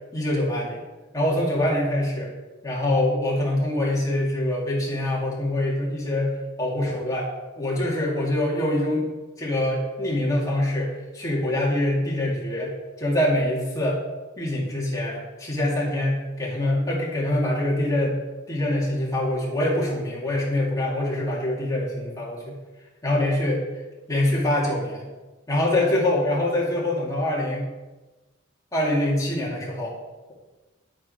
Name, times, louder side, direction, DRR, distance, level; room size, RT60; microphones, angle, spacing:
voice 1, 0.1-0.8 1.1-2.3 2.6-6.3 6.6-7.3 7.6-9.1 9.4-14.0 14.4-18.2 18.5-22.5 23.0-23.6 24.1-25.1 25.5-27.6 28.7-29.9, left 1 dB, 15° left, -5 dB, 2.4 m, -24 dB
9.7 x 8.7 x 4.4 m, 1.2 s
head